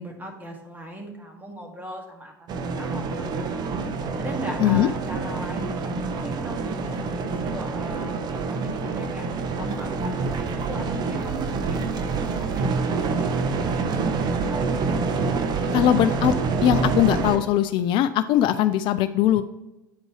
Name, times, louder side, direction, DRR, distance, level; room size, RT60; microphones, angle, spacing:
voice 1, 0.0-3.3 4.2-9.2 9.6-13.3, right 1 dB, 15° right, 1 dB, 2.1 m, -37 dB
sound 1, 2.5-17.4, right 4 dB, 45° right, 0.9 m, -27 dB
voice 2, 4.6-4.9 15.7-16.3 16.6-19.4, left 12 dB, 55° left, 12 dB, 0.4 m, -20 dB
8.9 x 5.3 x 3.1 m, 0.99 s
hypercardioid pair, 80°, 10 cm